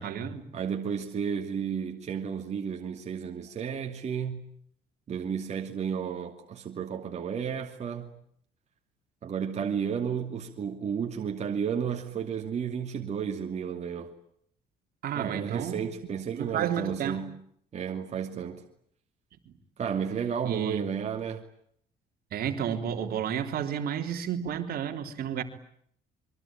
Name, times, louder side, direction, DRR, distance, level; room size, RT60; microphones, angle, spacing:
voice 1, 0.0-0.5 15.0-15.8 16.3-17.2 19.5-19.6 20.5-20.8 22.3-25.4, right 8 dB, 65° right, 3.5 m, -31 dB
voice 2, 0.5-4.4 5.1-8.1 9.2-14.2 15.1-17.4 17.7-18.6 19.8-21.4, right 7 dB, 40° right, 2.7 m, -32 dB
27.0 x 23.5 x 8.9 m
cardioid pair, 110°, 17 cm